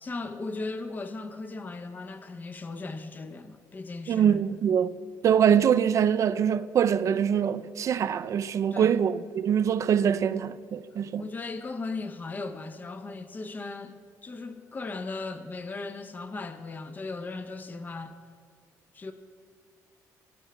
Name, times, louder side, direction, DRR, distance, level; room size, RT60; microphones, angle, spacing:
voice 1, 0.0-4.4 8.7-9.0 11.2-18.1 18.9-19.1, left 3 dB, 25° left, 0.6 m, -37 dB
voice 2, 4.1-5.0 5.2-11.3, right 8 dB, 50° right, 0.4 m, -24 dB
18.5 x 9.4 x 2.2 m
cardioid pair, 95°, 7 cm